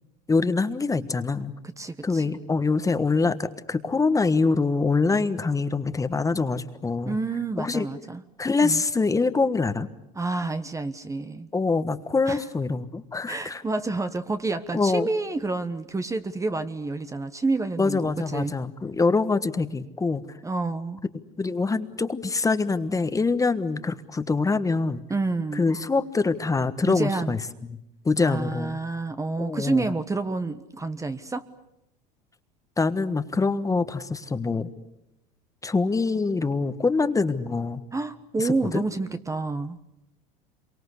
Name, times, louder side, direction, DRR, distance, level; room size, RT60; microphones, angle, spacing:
voice 1, 0.3-1.5 2.0-7.2 7.6-7.9 8.4-9.9 11.5-13.6 14.7-15.1 17.8-20.2 21.4-25.0 25.5-27.8 28.0-28.8 29.4-29.9 32.8-34.7 35.6-37.8 38.4-38.8, left 4 dB, 15° left, 11 dB, 1.4 m, -24 dB
voice 2, 1.8-2.4 7.0-8.2 8.6-8.8 10.1-11.5 12.3-12.4 13.3-18.5 20.4-21.0 25.1-25.7 26.8-27.4 28.2-31.5 37.9-39.8, right 3 dB, 15° right, 10 dB, 1.2 m, -29 dB
27.0 x 24.0 x 8.3 m, 0.85 s
supercardioid pair, 100°, 21 cm